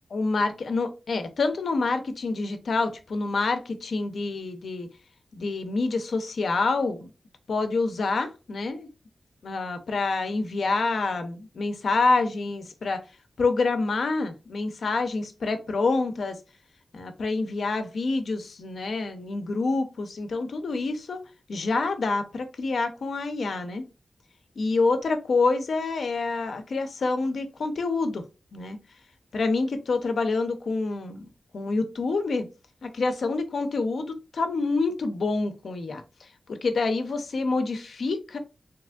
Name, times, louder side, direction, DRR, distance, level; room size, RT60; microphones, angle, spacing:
voice 1, 0.1-4.9 5.3-7.1 7.5-8.9 9.4-13.0 13.4-16.4 16.9-21.2 21.5-23.8 24.6-28.2 28.5-28.8 29.3-31.3 31.5-32.5 32.8-36.0 36.5-38.4, left 3 dB, 80° left, 7 dB, 0.5 m, -27 dB
3.4 x 2.9 x 2.2 m, 0.30 s
wide cardioid pair, 100°, 0 cm